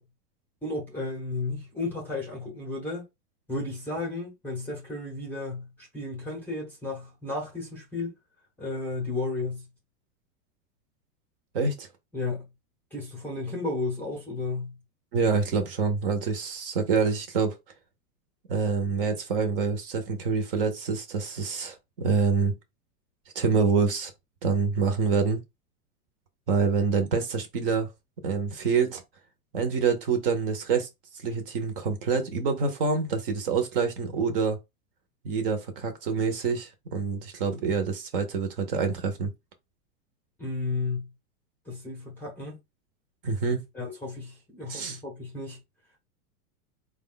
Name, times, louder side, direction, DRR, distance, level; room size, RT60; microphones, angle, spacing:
voice 1, 0.6-3.1 3.5-8.1 8.6-9.7 12.1-12.5 12.9-14.8 40.4-41.1 41.7-42.6 43.7-45.6, left 3 dB, 5° left, 0.7 m, -33 dB
voice 2, 11.5-11.9 15.1-17.6 18.5-22.5 23.3-24.1 24.4-25.4 26.5-27.9 28.2-29.0 29.5-34.6 35.2-39.3 43.2-43.6 44.7-45.0, right 5 dB, 40° right, 0.8 m, -26 dB
4.6 x 2.3 x 3.8 m
supercardioid pair, 170°, 46 cm